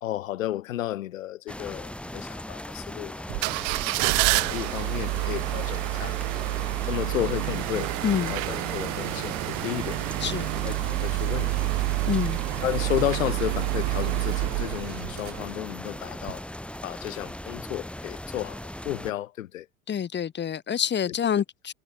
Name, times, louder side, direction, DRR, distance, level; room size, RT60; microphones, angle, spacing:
voice 1, 0.0-3.3 4.3-6.2 6.9-7.9 8.2-10.0 10.6-11.7 12.6-16.4 16.8-18.6 18.8-19.7, left 13 dB, 80° left, 1.3 m, -32 dB
sound 1, 1.5-19.1, left 1 dB, 5° left, 3.0 m, -38 dB
sound 2, 3.3-15.8 16.2-16.3, right 30 dB, 50° right, 0.7 m, -28 dB
voice 2, 8.0-8.4 10.2-10.5 12.0-12.4 19.9-21.7, left 8 dB, 25° left, 1.6 m, -27 dB
hypercardioid pair, 85°, 40 cm